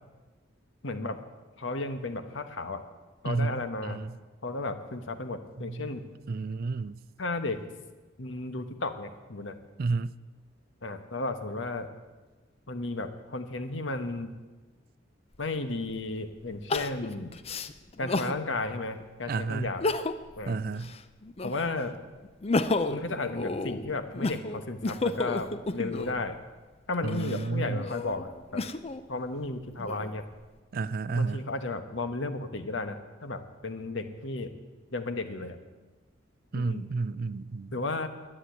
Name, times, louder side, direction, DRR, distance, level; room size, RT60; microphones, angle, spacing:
voice 1, 0.8-1.2 1.6-2.8 3.2-4.0 4.4-6.0 7.2-7.6 8.2-9.6 10.8-11.9 12.7-14.3 15.4-17.4 18.0-19.8 20.4-20.6 21.4-21.9 22.9-26.4 26.9-28.6 29.1-30.2 31.1-34.6 34.9-35.6 36.5-36.8 37.7-38.1, left 2 dB, 70° left, 8 dB, 1.2 m, -34 dB
voice 2, 3.2-4.2 5.6-6.0 6.3-7.0 9.8-10.1 19.3-19.7 20.5-20.9 27.0-27.9 30.7-31.4 36.5-37.8, right 4 dB, 50° right, 17 dB, 0.4 m, -31 dB
Crying sobbing, 15.3-15.4 16.7-18.4 18.9-19.0 19.7-20.4 20.7-21.8 22.2-26.2 26.9-29.0 29.6-30.4, left 3 dB, 30° left, 0.6 m, -32 dB
11.0 x 10.0 x 9.0 m, 1.3 s
head